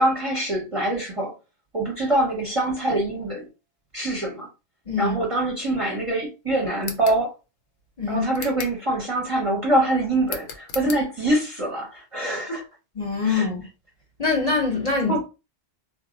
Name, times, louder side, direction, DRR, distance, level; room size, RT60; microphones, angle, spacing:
voice 1, 0.0-1.3 1.7-3.5 3.9-4.5 5.0-7.4 8.1-12.6 13.2-13.5 15.1-15.3, right 1 dB, 35° right, 0.7 m, -24 dB
sound 1, 6.8-7.2 8.3-8.8 10.2-11.0, left 6 dB, 75° left, 0.8 m, -36 dB
voice 2, 13.0-13.6 14.2-15.3, left 4 dB, 40° left, 0.7 m, -24 dB
2.0 x 2.0 x 3.7 m
omnidirectional pair, 1.2 m